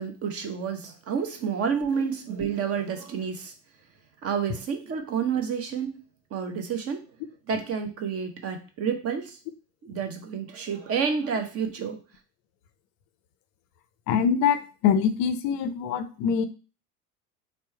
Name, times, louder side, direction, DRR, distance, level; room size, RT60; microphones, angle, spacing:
voice 1, 0.0-3.5 4.2-6.0 6.3-7.1 7.5-9.4 9.8-12.0, right 6 dB, 30° right, 5 dB, 0.7 m, -29 dB
voice 2, 14.1-16.5, left 7 dB, 40° left, 10 dB, 0.5 m, -24 dB
4.4 x 2.1 x 4.3 m, 0.34 s
figure-of-eight pair, 70°, 47 cm